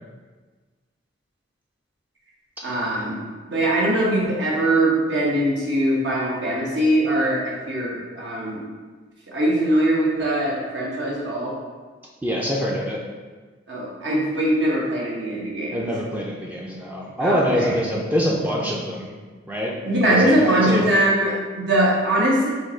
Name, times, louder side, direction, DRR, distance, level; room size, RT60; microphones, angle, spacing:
voice 1, 2.6-8.6 9.3-11.6 13.7-15.8 17.2-17.7 19.9-22.5, right 1 dB, 75° right, -5 dB, 1.2 m, -21 dB
voice 2, 12.2-13.0 15.7-19.1 19.5-19.7 20.1-20.8, equal, 10° right, -3 dB, 0.4 m, -24 dB
4.5 x 2.6 x 4.3 m, 1.4 s
head